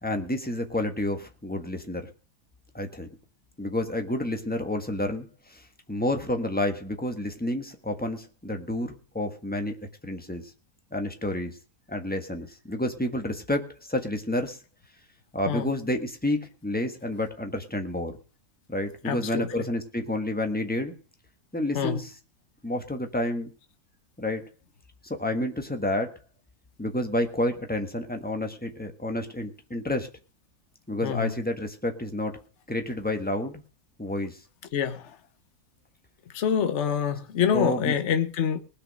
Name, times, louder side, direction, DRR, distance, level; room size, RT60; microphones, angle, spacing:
voice 1, 0.0-2.1 2.7-3.1 3.6-9.8 10.0-10.4 10.9-11.5 11.9-14.6 15.3-18.2 18.7-20.9 21.5-22.1 22.6-23.5 24.2-24.4 25.0-26.2 26.8-30.1 30.9-32.4 32.7-33.6 34.0-34.4 37.5-37.9, left 1 dB, 5° left, 1.4 m, -29 dB
voice 2, 19.0-19.7 21.7-22.0 31.0-31.4 34.7-35.2 36.3-38.6, left 8 dB, 50° left, 1.3 m, -26 dB
19.5 x 6.5 x 6.4 m
omnidirectional pair, 1.6 m